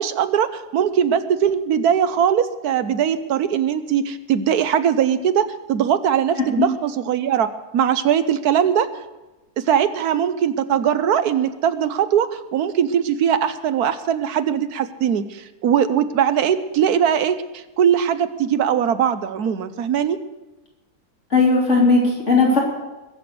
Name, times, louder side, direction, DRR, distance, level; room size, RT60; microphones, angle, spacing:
voice 1, 0.0-7.5 7.7-8.9 9.7-20.2, right 8 dB, 80° right, 12 dB, 1.3 m, -20 dB
voice 2, 21.3-22.6, left 3 dB, 50° left, -3 dB, 3.3 m, -16 dB
21.5 x 7.9 x 6.8 m, 1.1 s
omnidirectional pair, 1.6 m